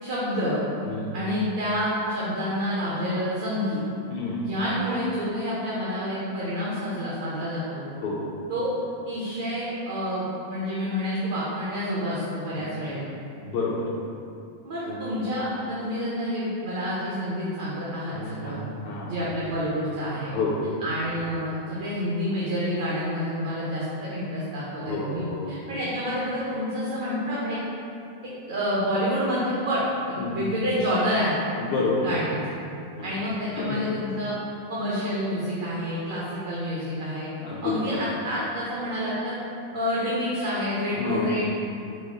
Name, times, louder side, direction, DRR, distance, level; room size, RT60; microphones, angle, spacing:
voice 1, 0.0-0.6 1.1-3.8 4.4-7.8 8.5-8.7 9.1-13.0 14.6-18.6 19.1-20.3 20.8-27.6 28.5-29.8 30.1-31.4 32.0-32.4 33.0-34.3 34.7-37.3 37.6-39.4 39.7-41.5, equal, 60° right, -7 dB, 0.7 m, -28 dB
voice 2, 4.1-4.5 8.0-8.3 12.6-12.7 13.4-13.9 14.9-15.0 18.1-18.6 18.8-19.1 20.2-20.7 24.8-25.5 30.2-30.4 31.6-32.1 33.0-33.1 33.6-33.8 37.4-37.9 41.0-41.5, left 3 dB, 45° left, -5 dB, 0.5 m, -29 dB
4.1 x 2.3 x 3.7 m, 2.5 s
figure-of-eight pair, 90°, 0 cm